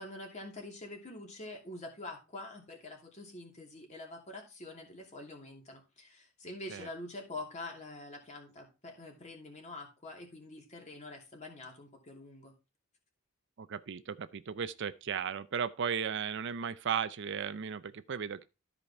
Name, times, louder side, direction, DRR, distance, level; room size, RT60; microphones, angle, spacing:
voice 1, 0.0-12.5, left 2 dB, 30° left, 2.7 m, -46 dB
voice 2, 13.6-18.5, right 7 dB, 55° right, 0.5 m, -35 dB
13.0 x 4.9 x 4.3 m
head